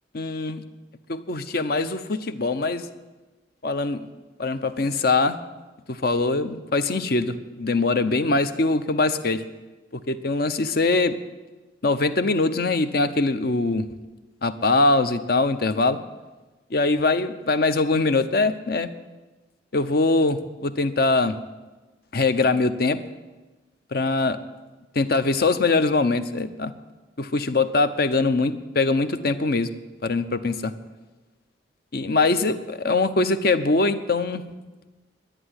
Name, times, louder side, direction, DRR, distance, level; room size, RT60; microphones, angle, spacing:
voice 1, 0.1-0.6 1.1-2.9 3.6-4.1 4.4-5.4 5.9-9.4 9.9-11.1 11.8-13.9 14.4-16.0 16.7-18.9 19.7-21.4 22.1-23.0 23.9-24.4 24.9-26.7 27.2-29.7 30.0-30.7 31.9-34.4, left 3 dB, 55° left, 11 dB, 0.8 m, -22 dB
11.0 x 10.0 x 9.7 m, 1.2 s
head